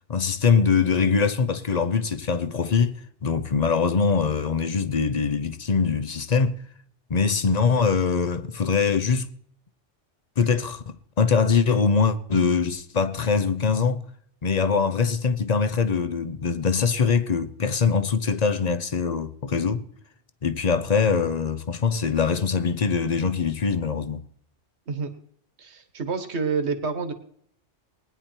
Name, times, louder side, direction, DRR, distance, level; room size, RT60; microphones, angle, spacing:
voice 1, 0.1-3.0 3.2-6.6 7.1-9.3 10.4-14.0 14.4-19.9 20.4-24.2, left 5 dB, 40° left, 0.8 m, -23 dB
voice 2, 25.6-27.1, right 5 dB, 70° right, 1.6 m, -28 dB
20.0 x 9.8 x 4.5 m
omnidirectional pair, 1.2 m